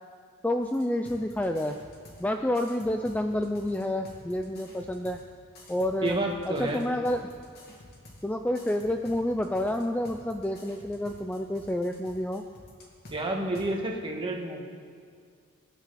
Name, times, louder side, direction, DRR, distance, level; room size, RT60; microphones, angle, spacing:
voice 1, 0.4-1.8 2.2-5.2 5.7-6.2 6.5-7.3 8.2-12.4, left 1 dB, 5° left, 5 dB, 0.4 m, -29 dB
sound 1, 0.6-2.2 2.5-5.2 5.6-8.2 8.5-13.2 13.5-13.7, left 1 dB, 50° left, 2.5 m, -50 dB
voice 2, 6.0-6.8 13.1-14.6, right 1 dB, 25° right, 0 dB, 2.0 m, -30 dB
25.5 x 10.5 x 4.2 m, 2.1 s
head